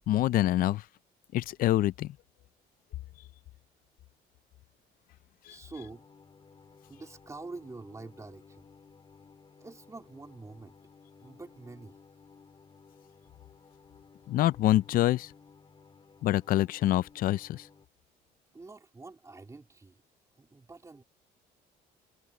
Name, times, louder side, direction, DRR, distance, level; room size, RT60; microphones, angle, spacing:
voice 1, 0.1-0.8 1.3-2.2 14.3-15.3 16.2-17.7, left 14 dB, 60° left, 0.4 m, -26 dB
voice 2, 5.4-6.1 6.9-8.7 9.6-10.7 11.2-12.0 18.5-20.0 20.4-21.0, right 3 dB, 20° right, 3.7 m, -46 dB
sound 1, 5.8-17.9, left 5 dB, 30° left, 4.6 m, -57 dB
cardioid pair, 110°, 17 cm